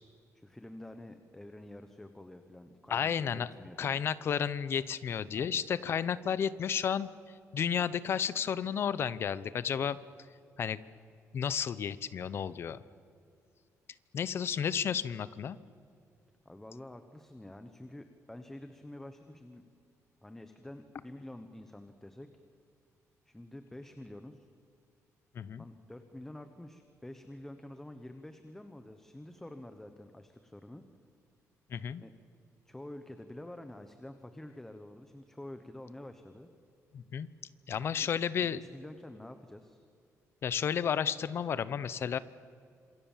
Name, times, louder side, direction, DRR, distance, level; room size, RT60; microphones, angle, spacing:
voice 1, 0.3-4.0 5.3-5.7 16.4-19.6 20.2-22.3 23.2-24.5 25.6-30.8 32.0-32.1 32.6-36.5 37.9-38.1 38.4-39.8, left 1 dB, 5° left, 7 dB, 1.1 m, -48 dB
voice 2, 2.9-3.5 3.8-10.0 10.6-10.8 11.3-12.8 14.1-15.6 25.3-25.6 31.7-32.0 36.9-37.3 37.7-38.6 40.4-42.2, left 8 dB, 45° left, 16 dB, 0.8 m, -32 dB
28.0 x 27.0 x 7.4 m, 2.4 s
cardioid pair, 180°, 6 cm